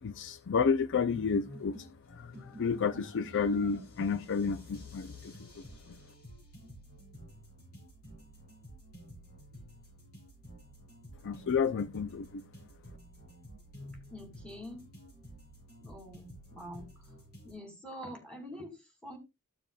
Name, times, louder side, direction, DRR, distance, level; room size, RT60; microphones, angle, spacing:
voice 1, 0.0-6.0 11.2-12.4, left 5 dB, 55° left, 0.5 m, -31 dB
sound 1, 0.9-17.5, right 1 dB, 75° left, 6.6 m, -51 dB
voice 2, 14.1-14.9 15.8-16.9 17.4-19.2, equal, 5° left, 2.7 m, -45 dB
14.5 x 6.9 x 2.3 m
head